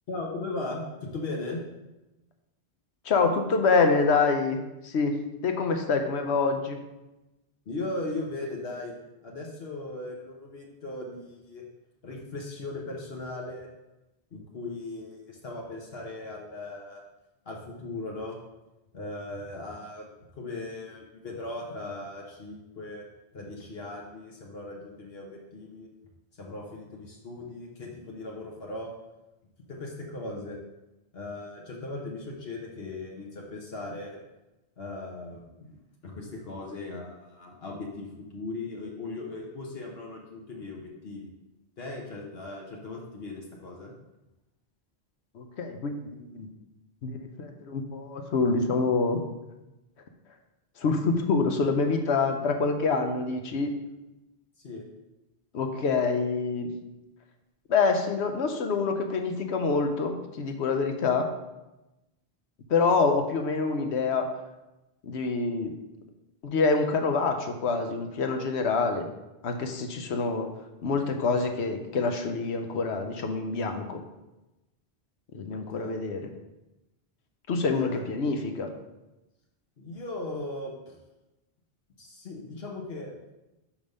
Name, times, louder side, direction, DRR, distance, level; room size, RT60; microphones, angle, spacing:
voice 1, 0.1-1.6 7.7-8.9 9.2-11.6 12.0-13.7 14.3-17.0 17.5-18.4 18.9-20.1 20.3-23.1 23.3-25.9 26.4-28.9 29.7-30.6 31.1-34.2 34.8-35.7 36.0-41.3 41.8-43.9 54.6-54.8 75.5-76.0 77.7-78.0 79.8-81.0 82.0-83.3, left 2 dB, 70° left, -1 dB, 1.2 m, -38 dB
voice 2, 3.0-4.6 4.8-6.8 45.3-46.5 47.0-49.2 50.8-53.7 55.5-56.7 57.7-61.3 62.7-64.3 65.0-65.7 66.4-69.1 69.4-70.5 70.8-74.0 75.3-76.3 77.5-78.7, left 4 dB, 90° left, 5 dB, 1.1 m, -26 dB
5.2 x 5.1 x 5.3 m, 1.0 s
omnidirectional pair, 1.1 m